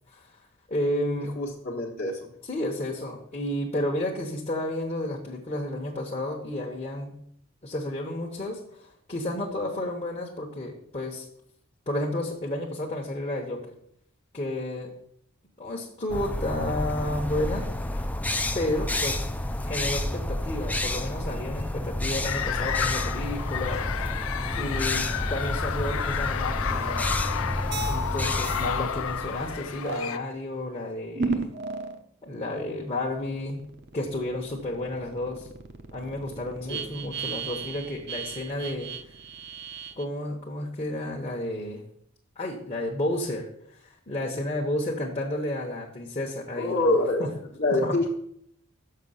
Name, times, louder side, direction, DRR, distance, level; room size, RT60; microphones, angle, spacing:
voice 1, 0.7-1.3 2.5-7.1 7.6-11.3 11.9-13.6 14.3-14.9 15.6-17.6 18.5-19.2 19.6-23.8 24.5-27.2 27.9-31.5 32.2-33.6 33.9-35.5 35.9-38.9 40.0-41.8 42.4-43.5 44.1-46.9 47.8-48.0, left 1 dB, 30° left, -2 dB, 1.0 m, -31 dB
voice 2, 1.2-2.3 36.7-36.9 46.5-47.2 47.6-48.1, left 2 dB, 45° left, -4 dB, 1.1 m, -26 dB
crows-jays, 16.1-29.8, left 1 dB, 10° left, 0.4 m, -30 dB
sound 1, 22.2-30.2, left 8 dB, 80° left, 0.5 m, -31 dB
sound 2, 27.7-28.1 28.4-28.7 29.8-30.1 31.1-32.0 32.5-40.0, right 4 dB, 55° right, 0.7 m, -35 dB
6.7 x 5.7 x 5.6 m, 0.69 s
head